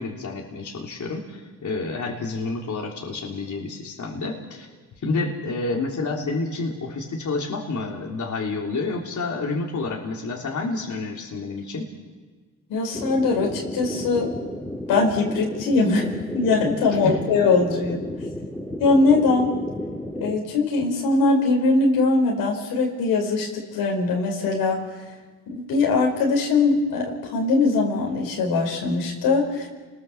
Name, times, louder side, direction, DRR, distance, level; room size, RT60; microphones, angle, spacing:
voice 1, 0.0-4.7 5.0-11.9 16.9-17.2, left 3 dB, 55° left, -1 dB, 3.4 m, -29 dB
voice 2, 12.7-14.3 14.9-18.0 18.8-19.5 20.2-24.8 25.5-29.7, left 3 dB, 90° left, 0 dB, 5.0 m, -21 dB
sound 1, 12.9-20.3, left 1 dB, 5° left, 4.1 m, -33 dB
30.0 x 20.5 x 7.1 m, 1.4 s
cardioid pair, 70°, 36 cm